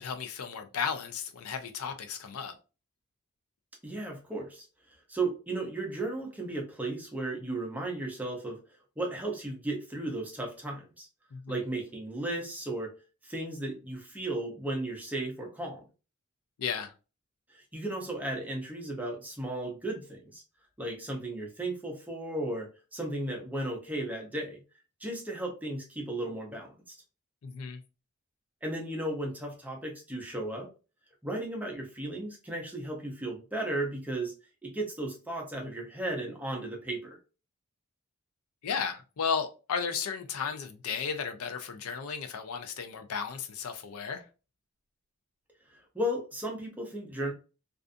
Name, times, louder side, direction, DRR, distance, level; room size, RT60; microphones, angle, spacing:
voice 1, 0.0-2.5 11.3-11.4 16.6-16.9 27.4-27.8 38.6-44.2, left 6 dB, 75° left, 0.4 m, -34 dB
voice 2, 3.8-4.7 5.1-8.6 9.0-11.1 11.5-12.9 13.2-15.8 17.5-20.4 20.8-24.6 25.0-27.0 28.6-30.7 31.2-34.3 34.6-37.2 45.9-47.3, right 1 dB, 5° right, 0.6 m, -35 dB
2.4 x 2.4 x 2.4 m
head